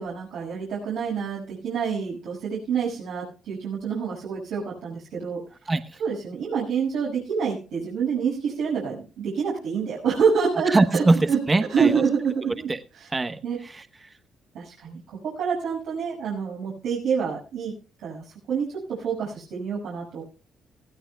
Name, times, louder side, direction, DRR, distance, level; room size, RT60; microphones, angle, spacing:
voice 1, 0.0-5.4 6.0-11.4 11.7-12.7 13.0-13.1 13.4-13.6 14.5-17.7 18.0-18.2 18.5-20.2, right 6 dB, 80° right, -5 dB, 6.2 m, -27 dB
voice 2, 5.7-6.0 10.7-12.0 12.7-12.8 13.1-13.8, right 2 dB, 25° right, 10 dB, 1.0 m, -22 dB
19.5 x 15.5 x 2.3 m, 0.35 s
cardioid pair, 90°, 0 cm